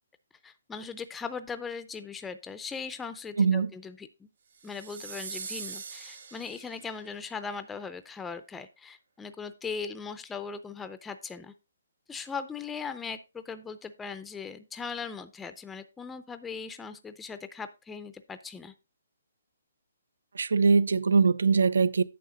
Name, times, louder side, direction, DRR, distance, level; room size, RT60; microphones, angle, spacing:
voice 1, 0.4-4.3 4.6-11.5 12.1-18.7, left 5 dB, 5° left, 0.4 m, -39 dB
voice 2, 3.4-3.7 20.3-22.0, right 5 dB, 80° right, 0.5 m, -22 dB
sound 1, 4.6-7.0, right 6 dB, 60° right, 2.8 m, -42 dB
9.3 x 6.5 x 3.9 m
hypercardioid pair, 165°, 0 cm